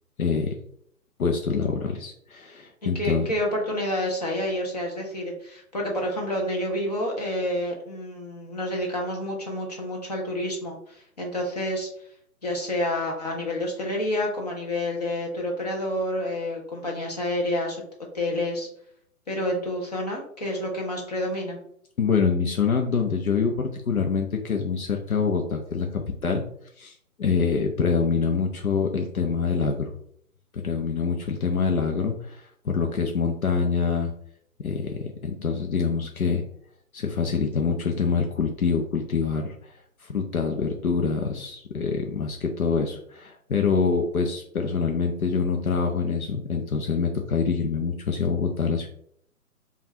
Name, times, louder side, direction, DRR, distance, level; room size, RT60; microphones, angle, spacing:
voice 1, 0.2-0.5 1.2-3.3 22.0-26.4 26.8-29.9 30.5-34.1 34.6-36.4 36.9-39.7 40.0-48.9, left 5 dB, 75° left, 2 dB, 0.7 m, -25 dB
voice 2, 2.9-11.9 12.4-17.8 18.1-18.7 19.3-21.6, left 1 dB, 30° left, 0 dB, 0.7 m, -29 dB
5.2 x 2.4 x 2.7 m, 0.67 s
figure-of-eight pair, 135°, 43 cm